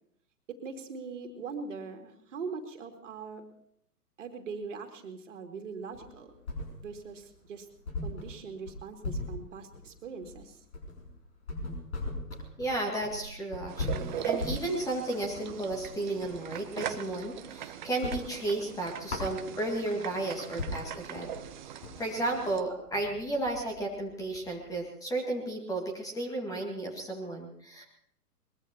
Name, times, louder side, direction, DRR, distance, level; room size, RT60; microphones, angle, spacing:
voice 1, 0.5-3.4 4.2-6.3 6.8-7.7 8.0-10.6, right 5 dB, 50° right, 4 dB, 2.6 m, -41 dB
sound 1, 5.9-7.1 7.4-7.5 7.8-16.4 16.8-17.6 17.9-19.9 20.3-20.4 20.6-24.7, left 2 dB, 45° left, 6.2 m, -39 dB
voice 2, 12.6-21.3 21.7-27.8, right 2 dB, 5° left, 1 dB, 2.0 m, -33 dB
sound 2, 13.7-22.6, right 10 dB, 30° right, 0.8 m, -40 dB
22.5 x 21.5 x 3.0 m, 0.71 s
figure-of-eight pair, 120°, 47 cm